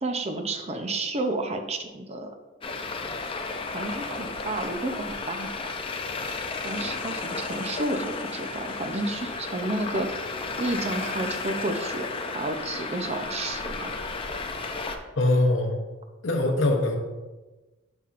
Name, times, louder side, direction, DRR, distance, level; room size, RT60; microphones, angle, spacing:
voice 1, 0.0-2.4 3.7-5.7 6.6-10.3 10.6-14.0, right 2 dB, 35° right, 6 dB, 0.5 m, -31 dB
Traffic noise roadway noise, 2.6-15.0, left 4 dB, 25° left, 0.4 m, -33 dB
voice 2, 15.2-15.7 16.2-17.0, left 2 dB, 70° left, 2 dB, 0.9 m, -22 dB
7.0 x 5.7 x 2.5 m, 1.2 s
head